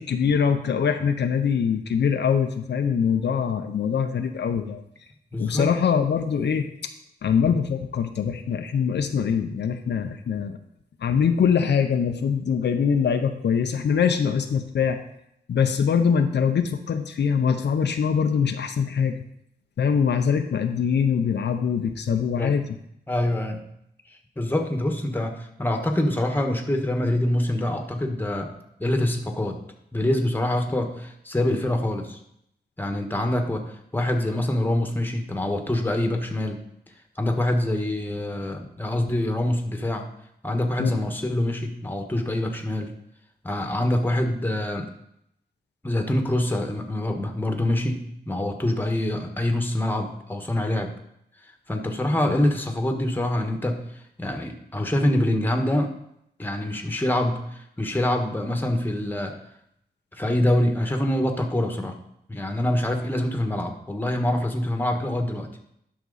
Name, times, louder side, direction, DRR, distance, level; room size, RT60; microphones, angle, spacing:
voice 1, 0.0-4.8 5.4-6.7 7.2-10.6 11.0-15.0 15.5-19.2 19.8-22.7 40.8-41.0, left 7 dB, 80° left, 6 dB, 0.7 m, -23 dB
voice 2, 5.3-5.7 22.0-22.5 23.1-23.6 24.4-28.5 28.8-29.6 29.9-32.2 32.8-36.6 37.2-40.1 40.4-42.9 43.4-44.9 45.8-50.9 51.7-55.9 56.4-59.4 60.1-61.9 62.3-65.5, left 1 dB, 10° left, 4 dB, 1.4 m, -25 dB
11.0 x 6.0 x 4.0 m, 0.75 s
wide cardioid pair, 80°, 18 cm